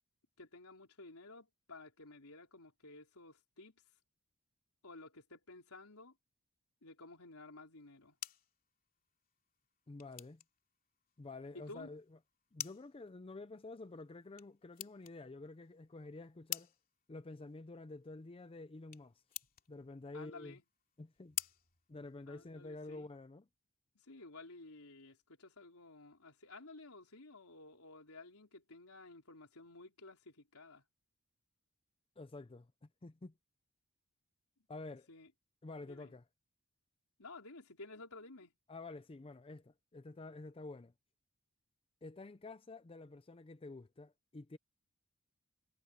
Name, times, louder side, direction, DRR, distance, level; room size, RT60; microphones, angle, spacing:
voice 1, 0.4-3.8 4.8-6.2 6.8-8.2 11.5-11.9 20.1-20.6 22.3-23.1 24.0-30.8 35.1-35.3 35.8-36.2 37.2-38.5, left 2 dB, 75° left, 4.3 m, -54 dB
sound 1, 7.7-22.7, left 11 dB, 40° left, 2.9 m, -51 dB
voice 2, 9.9-10.4 11.2-12.0 12.5-16.7 17.1-19.2 19.7-20.6 21.0-21.4 21.9-23.5 32.2-33.3 34.7-35.1 35.6-36.2 38.7-40.9 42.0-44.6, left 2 dB, 25° left, 0.5 m, -49 dB
head